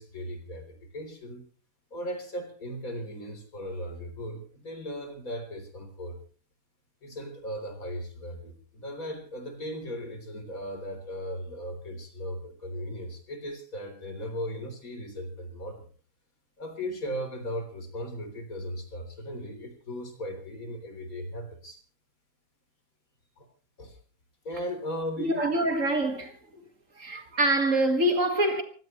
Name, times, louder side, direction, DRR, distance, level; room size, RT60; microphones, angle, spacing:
voice 1, 0.0-1.5 1.9-6.2 7.0-15.8 16.6-21.8 23.4-23.5 23.8-24.0 24.4-25.5, equal, 55° left, 4.2 m, -37 dB
voice 2, 25.2-26.7 26.9-28.6, right 1 dB, 50° right, 2.3 m, -25 dB
24.0 x 16.5 x 3.2 m
omnidirectional pair, 1.8 m